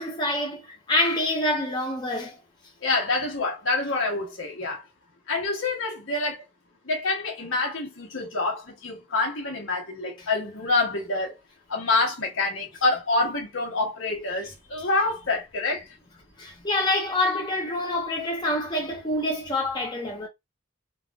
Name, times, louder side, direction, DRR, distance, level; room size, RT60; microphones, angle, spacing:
voice 1, 0.0-2.4 16.4-20.3, left 1 dB, 20° left, 0.7 m, -26 dB
voice 2, 2.8-4.8 5.3-6.4 6.8-11.4 11.7-15.9, left 3 dB, 80° left, 1.3 m, -27 dB
3.3 x 2.5 x 2.3 m
head